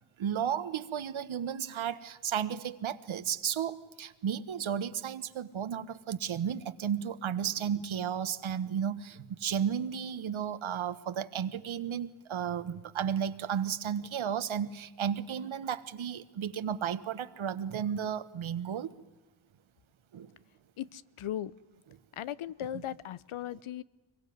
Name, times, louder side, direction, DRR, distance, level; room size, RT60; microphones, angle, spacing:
voice 1, 0.2-18.9 20.1-20.3 22.7-22.8, right 8 dB, 70° right, 14 dB, 1.4 m, -33 dB
voice 2, 20.8-21.5 22.2-23.8, left 11 dB, 80° left, 19 dB, 0.9 m, -37 dB
25.0 x 22.5 x 9.5 m, 1.1 s
cardioid pair, 95°, 49 cm